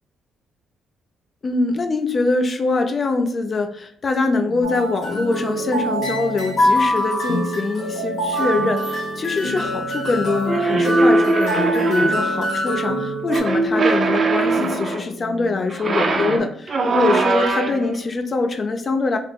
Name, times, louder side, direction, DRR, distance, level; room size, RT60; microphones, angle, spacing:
voice 1, 1.4-19.2, left 3 dB, 40° left, 5 dB, 0.5 m, -23 dB
sound 1, 4.4-16.4, left 3 dB, 75° left, 1.0 m, -33 dB
sound 2, 4.6-13.4, right 1 dB, 55° left, 1.3 m, -24 dB
sound 3, 10.5-12.3 13.3-15.1 15.7-18.0, right 3 dB, 40° right, 0.5 m, -20 dB
3.3 x 2.0 x 4.1 m, 0.63 s
cardioid pair, 90°, 0 cm